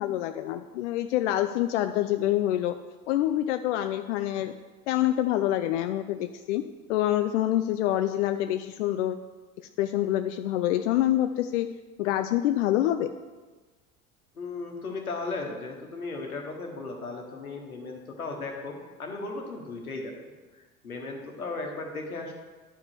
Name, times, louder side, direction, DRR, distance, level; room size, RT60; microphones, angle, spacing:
voice 1, 0.0-2.8 3.1-4.5 4.9-6.6 6.9-9.2 9.8-11.7 12.0-13.1, left 13 dB, 55° left, 9 dB, 0.5 m, -26 dB
voice 2, 14.3-20.1 20.5-22.3, left 3 dB, 80° left, 2 dB, 1.3 m, -36 dB
11.0 x 4.8 x 4.7 m, 1.3 s
figure-of-eight pair, 65°, 43 cm